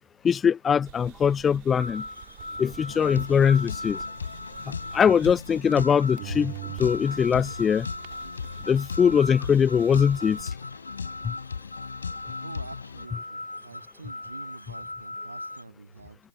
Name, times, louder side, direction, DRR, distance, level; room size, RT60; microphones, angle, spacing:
voice 1, 0.2-2.0 2.6-4.0 4.9-6.5 6.8-7.9 8.7-10.4, left 7 dB, 10° left, 0.3 m, -21 dB
sound 1, 0.9-5.9 6.2-10.4, right 29 dB, 20° right, 2.8 m, -45 dB
sound 2, 1.8-15.6, left 2 dB, 80° left, 7.3 m, -39 dB
sound 3, 2.9-13.1, left 5 dB, 50° left, 4.7 m, -38 dB
voice 2, 12.4-16.2, right 3 dB, 65° right, 8.0 m, -46 dB
open air
figure-of-eight pair, 145°, 0 cm